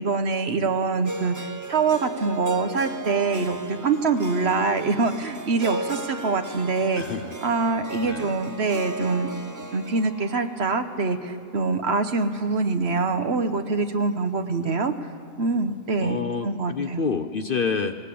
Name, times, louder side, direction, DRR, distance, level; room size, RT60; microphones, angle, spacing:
voice 1, 0.0-1.4 1.7-7.0 7.4-9.3 9.7-14.9 15.4-17.0, right 4 dB, 55° right, 8 dB, 1.2 m, -24 dB
Harp, 1.0-13.2, right 2 dB, 25° right, 0.4 m, -36 dB
voice 2, 6.9-7.4 8.0-8.4 16.0-18.0, left 5 dB, 50° left, 9 dB, 0.8 m, -28 dB
19.5 x 18.5 x 8.5 m, 2.1 s
omnidirectional pair, 1.4 m